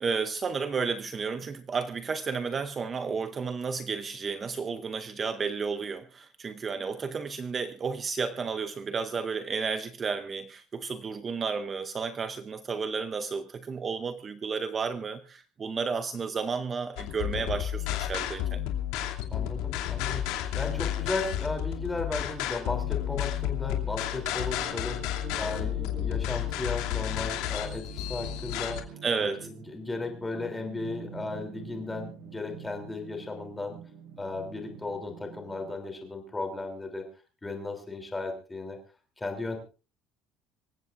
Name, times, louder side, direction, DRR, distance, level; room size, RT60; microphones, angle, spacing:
voice 1, 0.0-18.6 29.0-29.5, right 5 dB, 20° right, 10 dB, 0.7 m, -32 dB
sound 1, 17.0-28.8, left 11 dB, 80° left, 2.7 m, -31 dB
voice 2, 19.3-28.8 29.2-33.8 34.2-37.0 37.4-38.8 39.2-39.6, left 3 dB, 10° left, 4 dB, 3.2 m, -35 dB
sound 2, 23.7-35.7, right 6 dB, 90° right, 5.1 m, -46 dB
25.5 x 15.5 x 2.6 m, 0.34 s
cardioid pair, 180°, 0 cm